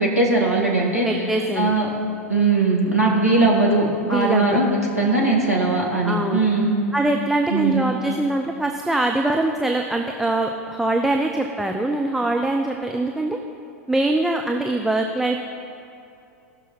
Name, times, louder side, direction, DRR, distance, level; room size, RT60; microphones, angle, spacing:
voice 1, 0.0-1.1 1.6-1.9 2.3-4.7 4.9-6.8 7.5-7.8, right 3 dB, 85° right, -4 dB, 1.9 m, -19 dB
voice 2, 1.0-1.7 4.0-4.6 6.0-6.4 6.9-13.4 13.9-15.4, right 2 dB, 5° right, 2 dB, 0.6 m, -23 dB
18.5 x 6.3 x 4.2 m, 2.7 s
figure-of-eight pair, 90°, 8 cm